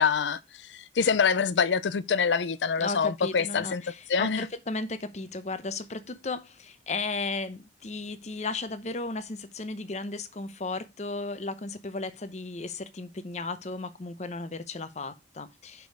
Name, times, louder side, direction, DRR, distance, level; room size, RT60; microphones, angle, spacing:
voice 1, 0.0-3.8 4.1-4.4, left 6 dB, 90° left, 0.5 m, -25 dB
voice 2, 2.8-15.9, left 3 dB, 40° left, 0.8 m, -35 dB
6.1 x 5.3 x 4.7 m
head